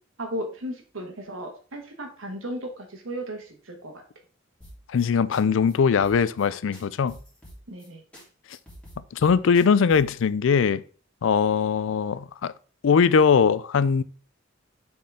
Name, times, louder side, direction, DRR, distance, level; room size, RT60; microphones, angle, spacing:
voice 1, 0.2-3.9 7.7-8.0, equal, 90° right, 1.5 m, -35 dB
sound 1, 4.6-5.1 5.3-5.4 5.7-5.8 6.0-6.5 6.7-7.9 8.1-8.2 8.5-10.2, equal, 5° left, 2.9 m, -47 dB
voice 2, 4.9-7.2 9.1-10.8 11.2-12.5 12.8-14.0, left 6 dB, 70° left, 0.4 m, -21 dB
7.5 x 4.3 x 3.5 m
head